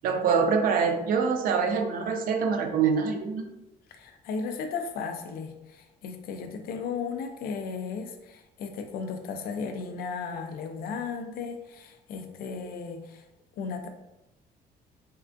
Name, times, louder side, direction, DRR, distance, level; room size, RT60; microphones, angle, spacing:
voice 1, 0.0-3.5, right 5 dB, 60° right, 5 dB, 0.4 m, -25 dB
voice 2, 3.9-13.2 13.6-13.9, left 5 dB, 65° left, 6 dB, 0.4 m, -35 dB
3.5 x 2.2 x 2.5 m, 0.95 s
cardioid pair, 175°, 16 cm